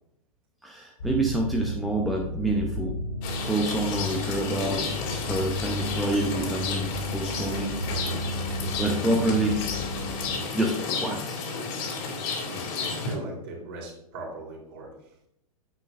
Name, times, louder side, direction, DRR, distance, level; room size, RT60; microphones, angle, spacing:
voice 1, 0.6-3.0 3.4-8.3 8.8-9.7 10.5-11.4, right 1 dB, ahead, -1 dB, 0.9 m, -28 dB
sound 1, 1.0-10.4, equal, 60° left, 2.8 m, -33 dB
Rain, 3.2-13.2, left 4 dB, 40° left, 2.3 m, -32 dB
voice 2, 13.0-15.1, right 2 dB, 40° right, -1 dB, 3.4 m, -39 dB
9.5 x 8.8 x 2.5 m, 0.77 s
figure-of-eight pair, 105°, 19 cm